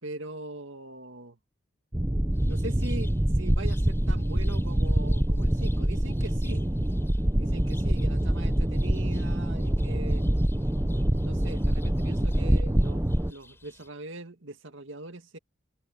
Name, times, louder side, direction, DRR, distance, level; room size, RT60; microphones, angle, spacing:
voice 1, 0.0-1.4 2.4-3.1 3.4-6.7 7.4-10.2 11.2-15.4, right 2 dB, 75° right, 2.1 m, -41 dB
sound 1, 1.9-13.3, right 1 dB, 15° right, 0.8 m, -25 dB
sound 2, 2.3-13.9, left 2 dB, 10° left, 5.2 m, -55 dB
open air
head